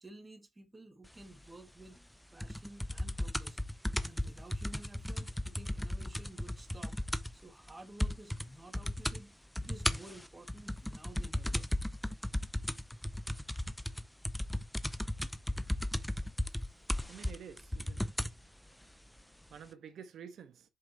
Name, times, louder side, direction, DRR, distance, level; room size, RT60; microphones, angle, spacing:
voice 1, 0.0-2.0 2.3-3.6 4.0-7.0 7.3-11.7 16.9-17.0, right 2 dB, 20° right, 1.9 m, -53 dB
sound 1, 2.4-7.4 7.7-7.8 8.0-8.5 8.7-9.2 9.5-18.4 19.2-19.3, left 1 dB, 5° left, 0.7 m, -35 dB
voice 2, 17.1-18.1 19.5-20.5, right 7 dB, 65° right, 1.3 m, -49 dB
7.2 x 5.3 x 2.9 m
cardioid pair, 90°, 0 cm